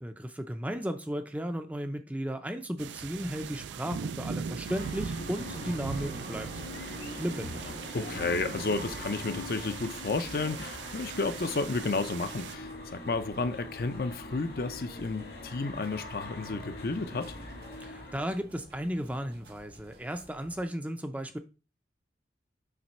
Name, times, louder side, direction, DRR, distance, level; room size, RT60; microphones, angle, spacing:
voice 1, 0.0-6.5 7.2-7.7 17.8-21.4, equal, 10° right, 0.5 m, -35 dB
sound 1, 2.8-12.5, right 6 dB, 90° right, 0.4 m, -40 dB
sound 2, 4.7-18.4, left 2 dB, 70° left, 1.8 m, -43 dB
sound 3, 5.4-20.6, equal, 65° right, 1.1 m, -50 dB
voice 2, 7.9-17.4, left 3 dB, 55° left, 0.5 m, -32 dB
5.9 x 3.3 x 5.4 m
head